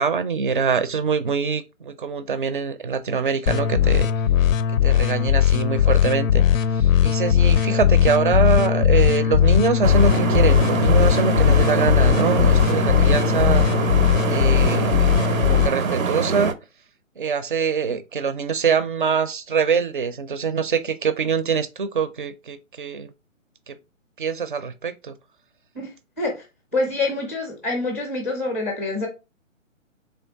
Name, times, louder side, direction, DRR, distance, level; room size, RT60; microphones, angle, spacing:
voice 1, 0.0-4.1 4.8-13.7 14.3-15.1 15.4-16.6 17.2-23.1 23.7-23.8 24.2-25.1, right 6 dB, 40° right, 0.4 m, -24 dB
sound 1, 3.5-15.7, left 9 dB, 80° left, 0.5 m, -18 dB
sound 2, 9.8-16.5, right 5 dB, 90° right, 0.6 m, -24 dB
voice 2, 26.7-29.1, left 2 dB, 10° left, 0.5 m, -26 dB
3.5 x 3.3 x 3.8 m
figure-of-eight pair, 140°, 39 cm